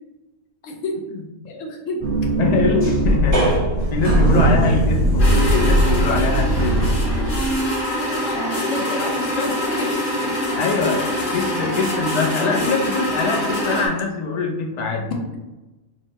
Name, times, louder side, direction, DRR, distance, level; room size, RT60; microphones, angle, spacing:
voice 1, 0.6-0.9 1.4-2.0 4.7-4.8 8.0-10.3 11.2-11.5 15.1-15.4, left 2 dB, 85° left, 1 dB, 1.0 m, -30 dB
sound 1, 2.0-7.6, right 1 dB, 30° right, 1.1 m, -19 dB
voice 2, 2.4-3.6 3.9-6.9 10.6-15.1, left 4 dB, 65° left, 1 dB, 0.4 m, -23 dB
sound 2, 5.2-13.9, equal, 45° left, 0.9 m, -24 dB
4.0 x 2.1 x 4.0 m, 1.1 s
omnidirectional pair, 1.3 m